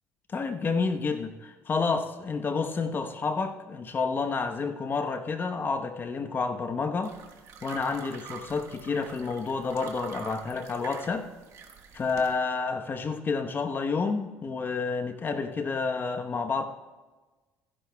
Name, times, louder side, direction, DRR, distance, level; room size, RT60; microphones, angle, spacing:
voice 1, 0.3-7.2 7.6-11.3 11.9-16.6, left 4 dB, 35° left, 7 dB, 1.0 m, -29 dB
sound 1, 7.0-12.4, right 6 dB, 60° right, 1.3 m, -46 dB
15.0 x 11.0 x 2.3 m, 1.2 s
supercardioid pair, 85°, 6 cm